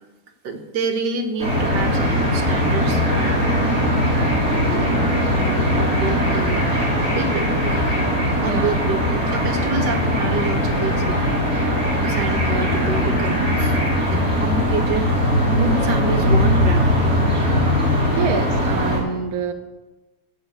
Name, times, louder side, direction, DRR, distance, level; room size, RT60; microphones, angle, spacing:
voice 1, 0.4-3.6 4.7-6.7 7.2-7.9 8.4-11.5 12.0-13.8 14.1-15.1 15.6-17.1, right 4 dB, 85° right, 5 dB, 1.9 m, -28 dB
sound 1, 1.4-19.0, equal, 5° right, 5.7 m, -20 dB
voice 2, 8.4-8.7 18.1-19.5, right 6 dB, 65° right, 6 dB, 1.3 m, -26 dB
14.5 x 6.8 x 8.1 m, 1.1 s
omnidirectional pair, 1.8 m